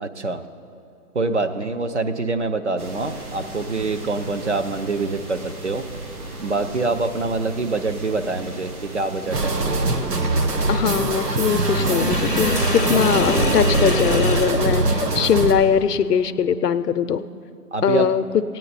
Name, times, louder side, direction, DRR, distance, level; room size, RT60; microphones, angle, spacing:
voice 1, 0.0-0.4 1.1-5.9 6.4-9.5 17.7-18.1, right 3 dB, 50° right, 9 dB, 0.6 m, -25 dB
sound 1, 2.8-14.2, right 1 dB, 65° right, 2.1 m, -34 dB
sound 2, 9.3-15.5, right 2 dB, 85° right, 1.4 m, -22 dB
voice 2, 10.7-17.3 17.8-18.4, left 7 dB, 80° left, 12 dB, 0.7 m, -21 dB
Sink (filling or washing), 11.5-15.5, left 2 dB, 35° left, 0.6 m, -27 dB
17.5 x 9.0 x 4.1 m, 2.7 s
hypercardioid pair, 170°, 47 cm